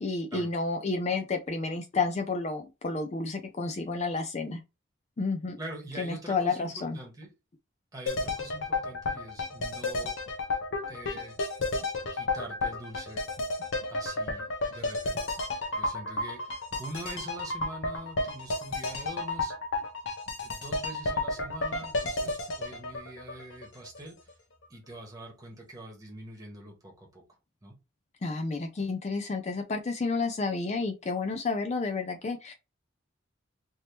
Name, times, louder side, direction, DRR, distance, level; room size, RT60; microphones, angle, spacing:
voice 1, 0.0-4.6 5.2-5.6 6.0-7.0 28.2-32.5, left 3 dB, 35° left, 0.4 m, -30 dB
voice 2, 5.6-7.3 7.9-10.2 10.9-11.3 12.1-13.3 13.9-15.3 15.7-19.5 20.4-24.3 24.7-27.2 27.6-27.7, right 1 dB, 20° right, 1.2 m, -44 dB
sound 1, 8.1-24.0 24.3-24.4, left 2 dB, 75° left, 0.8 m, -32 dB
3.4 x 2.8 x 2.9 m
head